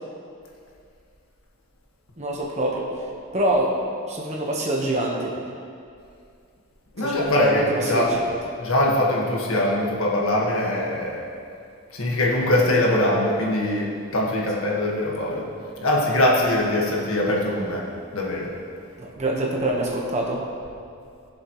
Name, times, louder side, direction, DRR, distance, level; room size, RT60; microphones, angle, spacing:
voice 1, 2.2-2.9 3.3-3.7 4.1-5.4 7.0-8.3 19.0-20.4, right 1 dB, 30° right, -1 dB, 1.2 m, -25 dB
voice 2, 7.0-8.1 8.6-11.2 11.9-15.4 15.8-17.9 18.1-18.5, left 1 dB, 70° left, -3 dB, 1.7 m, -22 dB
16.5 x 7.2 x 3.1 m, 2.4 s
head